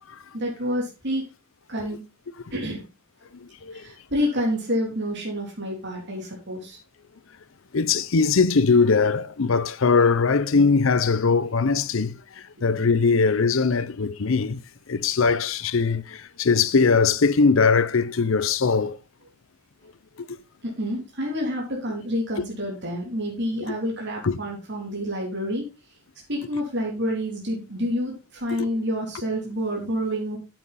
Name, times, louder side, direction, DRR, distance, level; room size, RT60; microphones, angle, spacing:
voice 1, 0.3-1.2 1.7-2.0 2.5-2.8 3.7-6.8 20.6-25.6 26.3-30.4, equal, 55° right, 3.2 m, -28 dB
voice 2, 3.3-3.9 7.7-14.6 14.9-19.0 20.2-20.4 24.2-24.4 28.6-28.7, left 4 dB, 65° left, 0.6 m, -21 dB
8.8 x 7.6 x 4.2 m
head